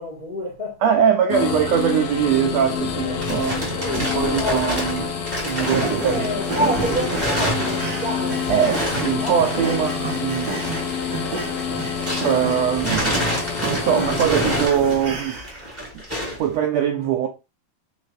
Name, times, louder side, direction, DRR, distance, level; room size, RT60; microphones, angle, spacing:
voice 1, 0.0-0.8 3.5-4.8 5.6-8.6 9.2-9.4, equal, 40° left, 0.6 m, -28 dB
voice 2, 0.8-5.1 5.4-6.7 8.5-10.7 12.2-13.1 13.6-15.4 16.4-17.3, right 9 dB, 80° right, 1.5 m, -22 dB
sound 1, 1.3-14.7, left 7 dB, 70° left, 1.4 m, -28 dB
sound 2, 2.8-12.4 12.7-16.5, equal, 5° right, 1.9 m, -29 dB
sound 3, 5.6-15.7, right 4 dB, 65° right, 1.1 m, -31 dB
6.3 x 3.3 x 2.5 m
omnidirectional pair, 3.6 m